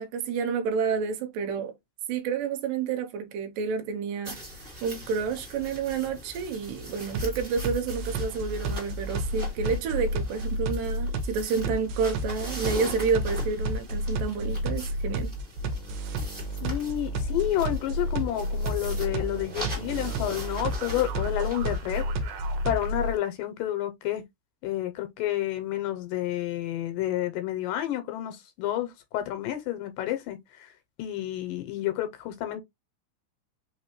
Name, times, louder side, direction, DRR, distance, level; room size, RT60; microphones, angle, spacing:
voice 1, 0.0-1.7 2.1-4.5 4.8-15.4, right 5 dB, 90° right, 2.3 m, -29 dB
sound 1, 4.2-23.2, equal, 20° right, 1.5 m, -42 dB
sound 2, 7.1-23.1, right 1 dB, 75° right, 2.0 m, -31 dB
voice 2, 16.6-22.0 22.6-24.2 24.6-30.7 31.0-32.6, left 13 dB, 85° left, 2.3 m, -30 dB
4.9 x 3.3 x 3.0 m
omnidirectional pair, 4.0 m